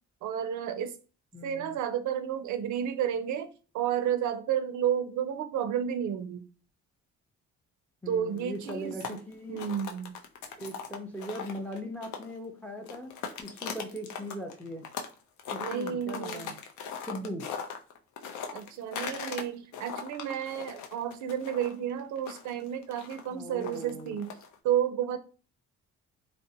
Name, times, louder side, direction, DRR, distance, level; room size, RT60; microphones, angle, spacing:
voice 1, 0.2-0.9 1.4-3.5 3.7-6.5 8.1-8.9 9.5-10.2 15.6-16.5 18.5-24.3 24.6-25.2, right 9 dB, 75° right, 9 dB, 0.4 m, -31 dB
voice 2, 1.3-1.8 8.0-9.6 10.5-13.1 13.4-14.9 15.5-16.6 17.0-17.5 23.3-24.2, equal, 5° left, 3 dB, 0.5 m, -39 dB
sound 1, 8.4-12.5 12.8-15.1 15.4-19.4 19.7-24.6, left 6 dB, 75° left, 0.5 m, -39 dB
2.5 x 2.0 x 2.7 m, 0.36 s
cardioid pair, 90°, 30 cm